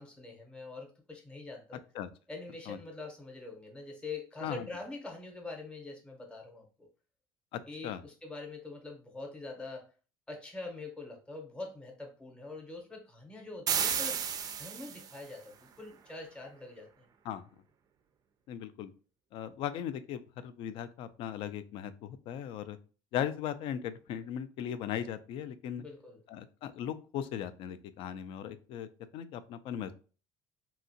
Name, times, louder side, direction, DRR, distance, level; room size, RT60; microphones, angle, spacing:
voice 1, 0.0-1.8 2.3-6.9 7.7-9.9 10.3-17.1 25.8-26.2, left 3 dB, 10° left, 2 dB, 0.7 m, -44 dB
voice 2, 7.5-8.0 17.2-17.5 18.5-18.9 19.3-22.8 23.1-25.8 26.3-28.9 29.1-29.9, left 9 dB, 65° left, 13 dB, 0.3 m, -38 dB
sound 1, 13.7-15.2, right 7 dB, 40° right, 0.3 m, -32 dB
2.8 x 2.4 x 2.6 m, 0.37 s
supercardioid pair, 95°, 10 cm